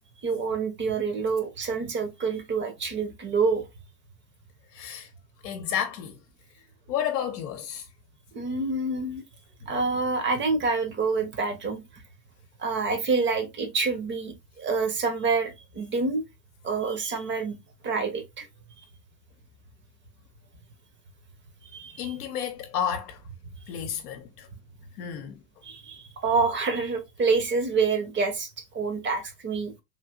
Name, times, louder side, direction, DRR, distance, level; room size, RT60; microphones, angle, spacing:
voice 1, 0.2-3.7 8.3-9.2 9.7-11.8 12.6-16.2 16.6-17.6 17.8-18.5 18.8-18.9 21.7-22.1 25.6-29.7, right 4 dB, 25° right, 0.9 m, -27 dB
voice 2, 4.7-5.1 5.4-6.2 6.9-7.9 9.6-9.7 22.0-23.2 23.7-24.5 25.0-25.4, left 9 dB, 65° left, 0.8 m, -31 dB
3.3 x 2.7 x 2.4 m
hypercardioid pair, 95°, 49 cm